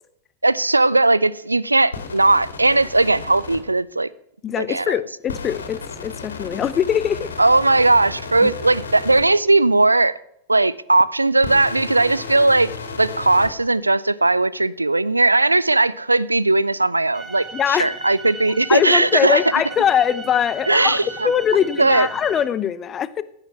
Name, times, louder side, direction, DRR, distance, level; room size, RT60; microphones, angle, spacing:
voice 1, 0.4-4.1 4.6-5.0 7.4-10.1 10.5-12.7 13.0-19.4 20.7-21.3 21.8-22.1, right 2 dB, 85° right, 0.4 m, -18 dB
sound 1, 1.9-3.6 5.3-9.2 11.4-13.5, left 4 dB, 70° left, 2.6 m, -33 dB
voice 2, 4.4-7.3 8.4-8.5 17.5-17.9 18.7-23.2, left 9 dB, 25° left, 0.7 m, -22 dB
sound 2, 17.1-22.5, right 4 dB, 10° right, 2.0 m, -36 dB
15.0 x 8.9 x 6.0 m
figure-of-eight pair, 90°, 0 cm